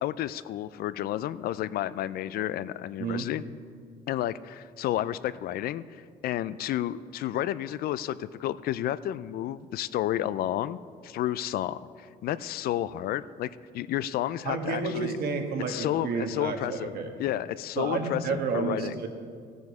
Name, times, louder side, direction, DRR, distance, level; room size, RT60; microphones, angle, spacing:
voice 1, 0.0-3.4 4.1-5.8 6.2-10.8 11.0-15.1 15.7-16.9 17.2-18.9, left 13 dB, 65° left, 16 dB, 0.4 m, -31 dB
voice 2, 14.4-17.1 17.8-19.1, right 4 dB, 65° right, 5 dB, 1.4 m, -30 dB
14.5 x 9.4 x 4.8 m, 2.2 s
cardioid pair, 110°, 17 cm